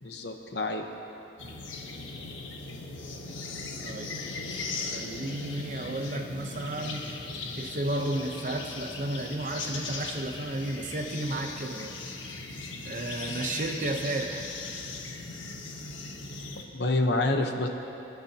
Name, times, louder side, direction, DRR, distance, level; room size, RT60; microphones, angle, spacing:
voice 1, 0.0-0.8 16.7-17.7, left 2 dB, 60° left, 4 dB, 1.0 m, -27 dB
sound 1, 1.4-16.6, left 3 dB, 90° left, 1.2 m, -38 dB
voice 2, 3.8-4.1 4.9-7.1 7.6-11.9 12.8-14.5, right 1 dB, 40° right, 4 dB, 0.9 m, -33 dB
25.5 x 10.5 x 2.9 m, 2.8 s
head